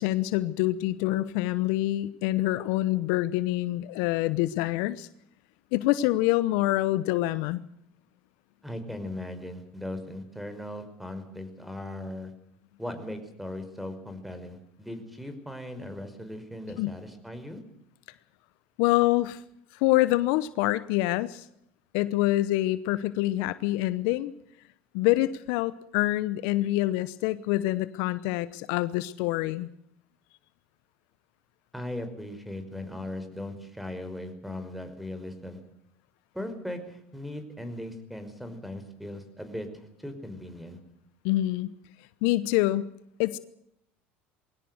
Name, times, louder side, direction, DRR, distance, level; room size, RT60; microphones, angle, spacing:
voice 1, 0.0-5.1 5.7-7.6 16.8-17.0 18.8-19.4 19.7-21.5 21.9-24.3 24.9-29.7 41.2-41.7 42.2-42.9 43.2-43.4, left 16 dB, 70° left, 16 dB, 0.9 m, -26 dB
voice 2, 8.6-12.3 12.8-17.6 31.7-35.6 36.3-40.8, left 1 dB, ahead, 9 dB, 5.3 m, -38 dB
22.5 x 17.5 x 8.1 m, 0.75 s
hypercardioid pair, 80°, 6 cm